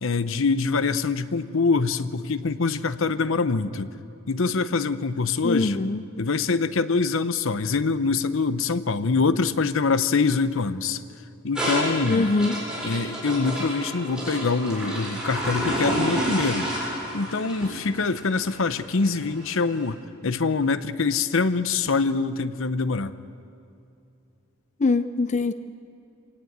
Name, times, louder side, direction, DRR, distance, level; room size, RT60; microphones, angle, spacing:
voice 1, 0.0-3.9 4.3-5.8 6.2-11.0 11.4-12.3 12.8-16.7 17.1-23.1, left 4 dB, 70° left, 13 dB, 0.8 m, -24 dB
voice 2, 5.4-6.0 12.0-12.6 24.8-25.5, left 3 dB, 35° left, 11 dB, 0.5 m, -23 dB
sound 1, 11.5-19.8, equal, 5° right, 7.5 m, -30 dB
27.0 x 18.5 x 8.0 m, 2.7 s
head